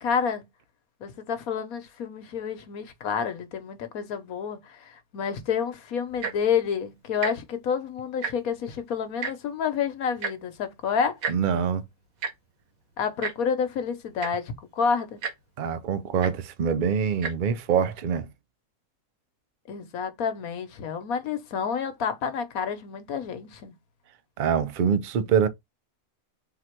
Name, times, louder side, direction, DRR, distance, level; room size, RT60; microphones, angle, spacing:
voice 1, 0.0-0.4 1.0-11.2 13.0-15.2 19.7-23.7, left 6 dB, 85° left, 1.4 m, -29 dB
Tick-tock, 6.1-6.5 7.1-7.3 7.6-7.8 8.1-8.6 9.2-9.3 10.2-10.3 11.2-11.4 12.2-12.3 13.2-13.3 13.9-14.0 14.2-14.5 15.2-15.3 16.2-16.3 17.1-17.3 18.0-18.1, right 6 dB, 80° right, 1.4 m, -31 dB
voice 2, 11.3-11.8 15.6-18.3 24.4-25.5, right 7 dB, 60° right, 0.5 m, -24 dB
3.9 x 2.8 x 4.4 m
omnidirectional pair, 1.5 m